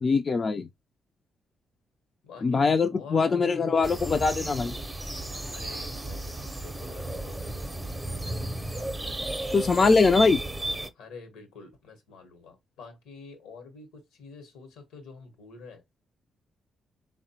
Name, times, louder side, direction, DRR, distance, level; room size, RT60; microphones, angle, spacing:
voice 1, 0.0-0.7 2.4-4.8 9.5-10.4, left 4 dB, 45° left, 0.3 m, -22 dB
voice 2, 2.2-4.0 5.5-7.9 11.0-15.8, left 4 dB, 80° left, 0.9 m, -47 dB
sound 1, 3.8-10.9, right 1 dB, 15° right, 0.6 m, -34 dB
3.6 x 2.1 x 2.7 m
hypercardioid pair, 50°, 0 cm